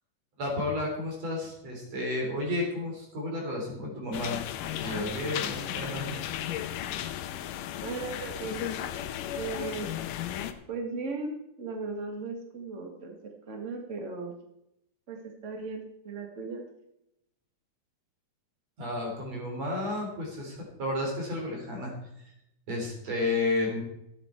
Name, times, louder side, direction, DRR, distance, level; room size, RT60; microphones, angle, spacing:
voice 1, 0.4-4.4 4.8-6.2 18.8-21.9 22.2-22.3 22.7-23.8, left 2 dB, 45° right, 0 dB, 4.3 m, -32 dB
sound 1, 4.1-10.5, left 11 dB, 80° left, 2.0 m, -35 dB
voice 2, 7.8-9.9 10.7-13.2 13.5-14.3 15.1-16.6, right 4 dB, 70° right, 3 dB, 0.7 m, -37 dB
14.5 x 9.1 x 4.5 m, 0.82 s
omnidirectional pair, 4.4 m